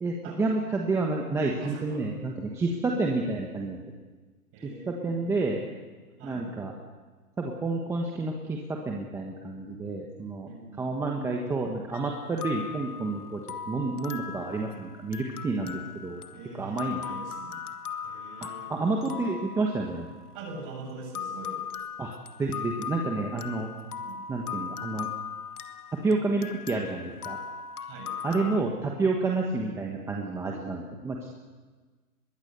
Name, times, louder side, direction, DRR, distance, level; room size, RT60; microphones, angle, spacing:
voice 1, 0.0-3.8 4.9-5.6 6.2-6.7 7.4-8.6 8.8-10.5 10.8-13.4 13.7-16.2 16.6-17.2 18.4-20.1 22.0-22.1 22.4-23.7 24.3-25.1 26.0-27.4 28.2-31.2, right 3 dB, 5° right, 0 dB, 1.3 m, -29 dB
voice 2, 1.4-2.0 2.7-3.0 4.5-5.6 6.2-6.7 10.5-10.9 16.3-17.6 18.0-18.7 20.3-21.6 23.9-24.2 27.8-28.1, right 3 dB, 30° right, 2 dB, 7.5 m, -43 dB
sound 1, 11.9-20.6 21.2-28.6, left 7 dB, 80° left, 1.7 m, -39 dB
25.5 x 22.0 x 6.8 m, 1.3 s
hypercardioid pair, 155°, 45 cm